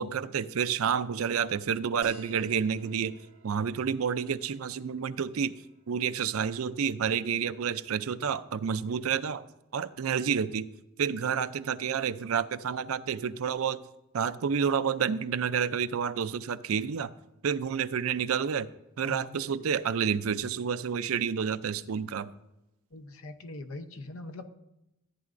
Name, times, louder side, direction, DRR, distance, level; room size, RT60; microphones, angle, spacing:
voice 1, 0.0-3.1 3.4-5.5 5.9-9.4 9.7-10.7 11.0-13.8 14.1-17.1 17.4-18.7 19.0-22.3, right 7 dB, 85° right, 13 dB, 0.5 m, -29 dB
sound 1, 2.0-7.1, right 3 dB, 65° right, 2.0 m, -55 dB
voice 2, 19.0-19.4 22.9-24.5, left 2 dB, 80° left, 9 dB, 0.8 m, -42 dB
14.0 x 9.0 x 2.6 m, 0.91 s
head